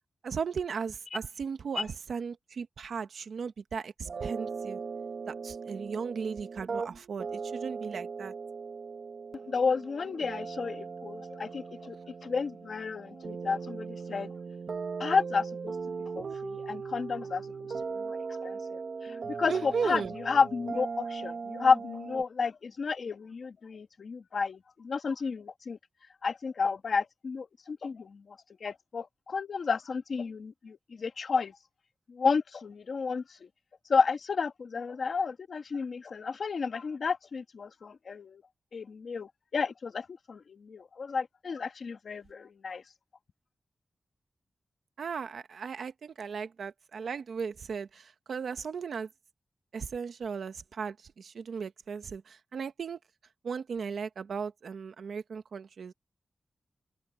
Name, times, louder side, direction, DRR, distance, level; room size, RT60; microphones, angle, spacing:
voice 1, 0.2-4.8 5.3-8.3 19.5-20.1 45.0-49.1 49.7-53.0 53.4-55.9, right 6 dB, 85° right, 1.2 m, -36 dB
sound 1, 4.0-22.2, right 5 dB, 60° right, 1.2 m, -39 dB
voice 2, 9.5-12.0 12.2-14.3 15.0-15.7 16.1-17.4 17.9-25.8 26.2-31.5 32.1-33.5 33.9-38.4 38.7-42.8, left 5 dB, 60° left, 1.4 m, -31 dB
wide cardioid pair, 180°, 0 cm